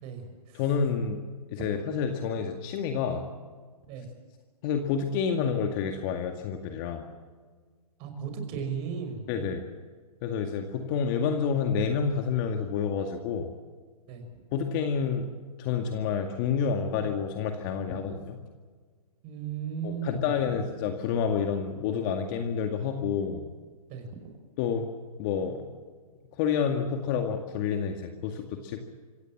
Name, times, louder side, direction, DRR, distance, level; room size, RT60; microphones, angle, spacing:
voice 1, 0.0-0.6 3.9-4.1 8.0-9.5 14.1-14.2 19.2-20.2 23.9-24.1, right 7 dB, 30° right, 6 dB, 5.6 m, -36 dB
voice 2, 0.5-1.2 1.5-3.3 4.6-7.1 9.3-9.6 10.2-13.5 14.5-15.3 15.6-18.4 19.8-23.5 24.6-24.9 25.2-25.6 26.4-28.8, left 6 dB, 35° left, 5 dB, 2.1 m, -29 dB
26.0 x 16.0 x 7.4 m, 1.5 s
hypercardioid pair, 135°, 20 cm